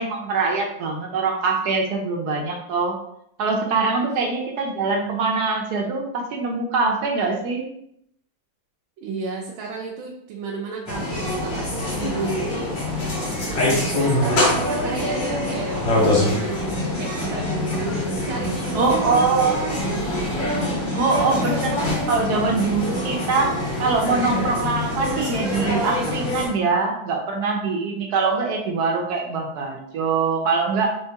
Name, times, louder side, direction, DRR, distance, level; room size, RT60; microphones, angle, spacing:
voice 1, 0.0-3.0 3.4-7.6 18.7-19.6 20.9-31.0, right 4 dB, 65° right, 2 dB, 1.1 m, -23 dB
voice 2, 9.0-12.7 13.4-20.2, right 4 dB, 85° right, -1 dB, 1.5 m, -32 dB
zoo people silly, 10.9-26.5, left 1 dB, 65° left, 1.9 m, -24 dB
4.4 x 3.6 x 2.8 m, 0.74 s
omnidirectional pair, 2.2 m